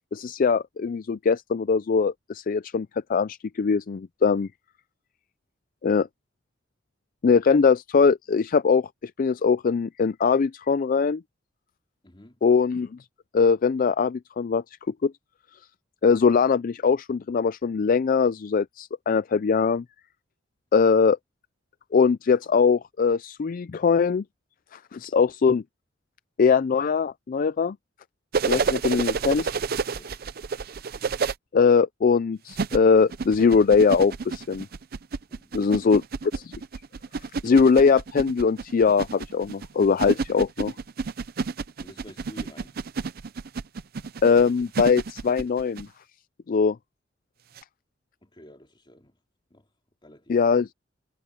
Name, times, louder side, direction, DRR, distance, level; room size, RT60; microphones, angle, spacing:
voice 1, 0.1-4.5 5.8-6.1 7.2-11.2 12.4-12.9 13.3-15.1 16.0-19.8 20.7-21.2 21.9-24.2 24.9-25.6 26.4-27.8 28.4-29.5 31.5-34.7 35.5-36.0 36.3-36.5 37.4-40.7 44.2-45.9 46.5-46.8 50.3-50.7, left 5 dB, 45° left, 0.4 m, -21 dB
voice 2, 12.0-12.4 28.5-28.7 29.9-30.3 35.3-35.8 41.8-42.8 48.2-49.2 49.5-49.7 50.0-50.5, left 1 dB, 25° left, 3.4 m, -49 dB
sound 1, 28.3-31.3 32.5-45.9 47.6-47.7, right 5 dB, 55° right, 0.5 m, -30 dB
head